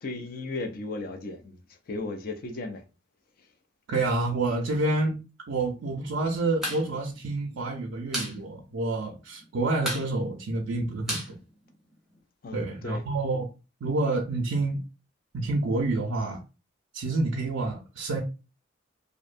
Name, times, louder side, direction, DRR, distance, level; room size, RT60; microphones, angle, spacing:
voice 1, 0.0-1.6 1.9-2.8 12.4-13.0, left 2 dB, 50° left, 0.4 m, -35 dB
voice 2, 3.9-5.2 5.5-11.4 12.5-13.5 13.8-14.8 15.3-16.4 16.9-18.2, right 2 dB, 85° right, 0.4 m, -28 dB
sound 1, 6.6-6.8 7.1-7.2 7.5-8.4 8.7-8.8 9.1-9.5 9.8-12.2, equal, ahead, 0.6 m, -33 dB
2.6 x 2.1 x 2.4 m
head